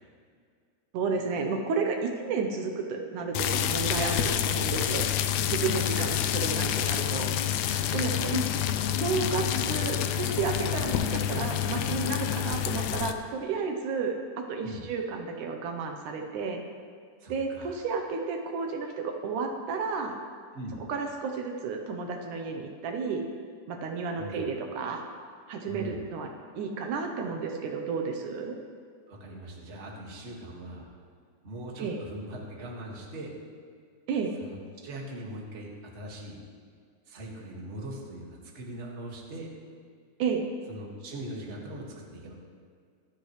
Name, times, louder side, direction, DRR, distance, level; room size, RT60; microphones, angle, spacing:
voice 1, 0.9-5.1 5.4-7.3 7.9-8.4 9.0-16.6 17.3-20.2 20.9-23.2 23.7-25.0 25.5-28.6 31.8-32.0 34.1-34.3 40.2-40.5, right 5 dB, 75° right, 3 dB, 2.4 m, -32 dB
sound 1, 3.3-13.1, left 10 dB, 85° left, 1.6 m, -28 dB
voice 2, 7.8-8.1 14.6-14.8 17.2-17.8 20.5-20.8 24.2-24.5 25.6-26.0 29.1-30.9 31.4-33.3 34.4-36.4 37.1-38.3 38.5-39.5 40.7-42.3, right 1 dB, 25° right, -2 dB, 1.7 m, -41 dB
25.0 x 8.8 x 3.3 m, 2.1 s
omnidirectional pair, 3.7 m